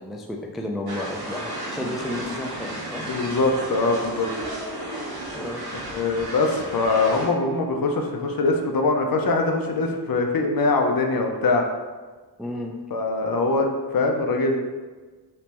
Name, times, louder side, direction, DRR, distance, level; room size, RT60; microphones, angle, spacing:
voice 1, 0.0-3.0 5.3-5.6 12.4-12.7, left 1 dB, ahead, 1 dB, 0.3 m, -32 dB
sound 1, 0.9-7.3, right 1 dB, 60° right, 1.1 m, -33 dB
voice 2, 3.1-4.3 5.9-11.6 12.9-14.6, left 3 dB, 55° left, 3 dB, 0.5 m, -22 dB
3.3 x 3.0 x 2.9 m, 1.3 s
cardioid pair, 65°, 43 cm